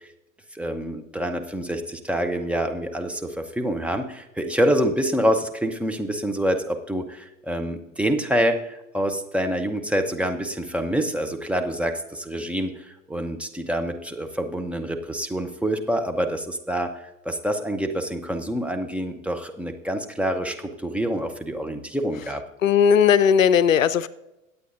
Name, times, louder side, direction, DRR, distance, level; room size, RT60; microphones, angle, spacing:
voice 1, 0.5-22.4, equal, 5° right, 4 dB, 0.8 m, -26 dB
voice 2, 22.6-24.1, left 8 dB, 70° left, 16 dB, 0.6 m, -17 dB
23.5 x 8.5 x 2.6 m, 0.93 s
figure-of-eight pair, 85°, 41 cm